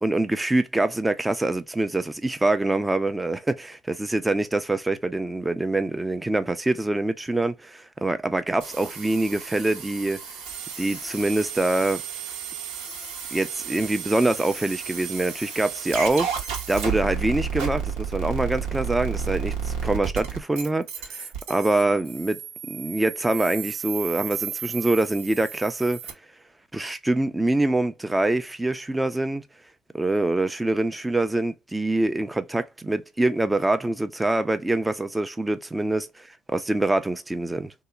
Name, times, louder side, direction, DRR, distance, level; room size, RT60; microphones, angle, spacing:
voice 1, 0.0-10.2 10.8-12.0 13.3-16.3 16.7-26.0 26.7-29.4 29.9-37.7, right 2 dB, 10° right, 0.5 m, -25 dB
sound 1, 8.6-26.1, right 6 dB, 70° right, 0.8 m, -33 dB
2.8 x 2.1 x 2.3 m
hypercardioid pair, 70°, 0 cm